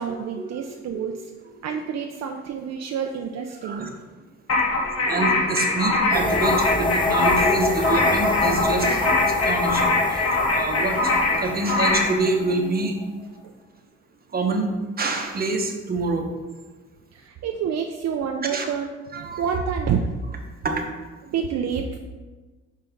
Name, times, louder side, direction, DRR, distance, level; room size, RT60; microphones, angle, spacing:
voice 1, 0.0-3.9 13.4-13.6 17.1-20.0 21.3-22.0, right 7 dB, 60° right, 4 dB, 0.5 m, -28 dB
voice 2, 0.6-1.1 3.6-3.9 4.7-10.2 10.5-13.0 14.3-14.7 15.0-16.3 18.4-18.7 19.1-19.4 20.6-20.9, right 2 dB, 30° right, 3 dB, 0.9 m, -26 dB
sound 1, 4.5-12.2, left 3 dB, 55° left, 1.1 m, -23 dB
sound 2, 6.1-13.0, left 3 dB, 15° left, 0.7 m, -26 dB
5.5 x 5.2 x 3.5 m, 1.3 s
cardioid pair, 90°, 30 cm